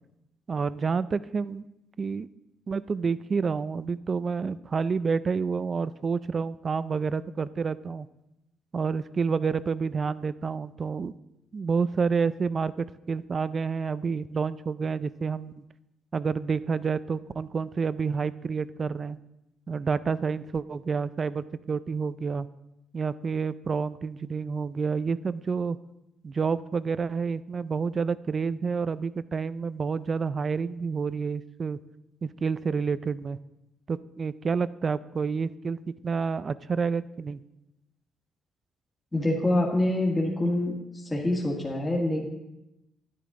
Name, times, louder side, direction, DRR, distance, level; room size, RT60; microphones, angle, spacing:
voice 1, 0.5-1.6 2.0-2.3 2.7-8.1 8.7-11.1 11.5-15.6 16.1-19.2 19.7-22.5 22.9-25.8 26.2-31.8 32.2-33.4 33.9-37.4, right 5 dB, 40° right, 16 dB, 0.4 m, -29 dB
voice 2, 39.1-42.3, left 1 dB, 20° left, -2 dB, 1.8 m, -26 dB
10.5 x 9.8 x 3.7 m, 0.91 s
cardioid pair, 90°, 0 cm